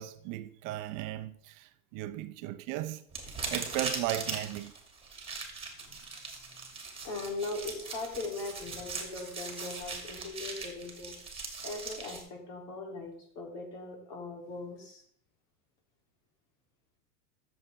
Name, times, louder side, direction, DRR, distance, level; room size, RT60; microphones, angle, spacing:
voice 1, 0.0-3.0 3.5-4.7, right 14 dB, 45° right, 0.7 m, -36 dB
sound 1, 3.1-12.2, right 4 dB, 15° right, 2.7 m, -40 dB
voice 2, 7.0-11.1 11.6-15.0, left 3 dB, 50° left, 3.4 m, -40 dB
13.5 x 7.1 x 3.6 m
supercardioid pair, 115°, 44 cm